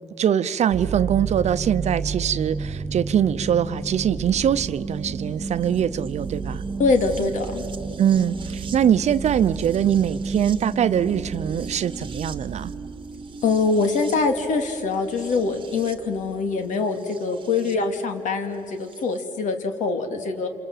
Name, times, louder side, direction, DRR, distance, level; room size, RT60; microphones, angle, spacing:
voice 1, 0.2-6.6 8.0-12.7, right 9 dB, 60° right, 13 dB, 0.8 m, -22 dB
sound 1, 0.7-17.7 18.9-19.0, right 4 dB, 40° right, 1.2 m, -33 dB
voice 2, 6.8-7.7 13.4-20.5, left 4 dB, 80° left, 6 dB, 2.5 m, -24 dB
28.0 x 27.5 x 7.5 m, 2.6 s
cardioid pair, 100°, 13 cm